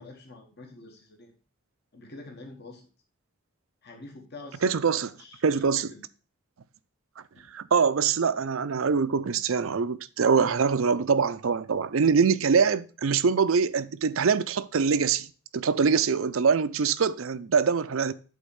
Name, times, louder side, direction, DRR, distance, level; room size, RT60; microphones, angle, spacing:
voice 1, 0.0-1.3 1.9-2.9 3.8-6.0 7.3-7.5, left 2 dB, 50° left, 1.4 m, -47 dB
voice 2, 4.6-5.1 5.4-5.9 7.5-15.3 15.5-18.1, right 5 dB, 70° right, 0.5 m, -24 dB
8.4 x 4.1 x 7.0 m
head